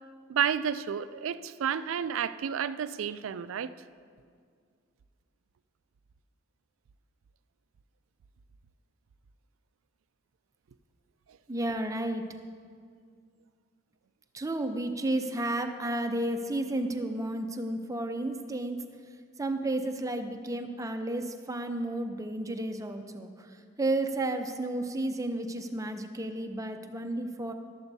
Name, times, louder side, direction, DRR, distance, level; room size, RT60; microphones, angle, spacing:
voice 1, 0.3-3.7, right 8 dB, 80° right, 0.4 m, -31 dB
voice 2, 11.5-12.2 14.3-18.8 19.4-23.5 23.8-27.5, right 1 dB, 15° right, 0.6 m, -32 dB
14.0 x 12.5 x 2.7 m
head